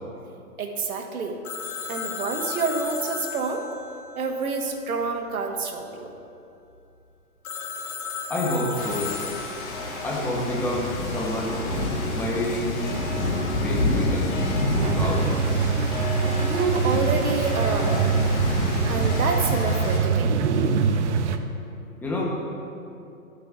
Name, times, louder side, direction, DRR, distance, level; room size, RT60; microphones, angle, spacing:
voice 1, 0.6-1.4 1.9-3.7 4.1-6.1 16.4-18.3 18.9-20.4, right 4 dB, 85° right, 3 dB, 1.3 m, -28 dB
Telephone, 1.4-5.1 7.4-10.0, left 6 dB, 90° left, 1.1 m, -35 dB
voice 2, 8.3-9.1 10.0-11.6 12.1-12.9 13.4-14.3 14.7-15.3 22.0-22.2, left 1 dB, 5° left, -4 dB, 0.9 m, -28 dB
Rain, 8.7-20.0, left 1 dB, 30° left, 1.7 m, -28 dB
sound 1, 14.8-21.4, right 5 dB, 55° right, 0.6 m, -24 dB
13.0 x 8.1 x 2.5 m, 2.6 s
hypercardioid pair, 145°, 42 cm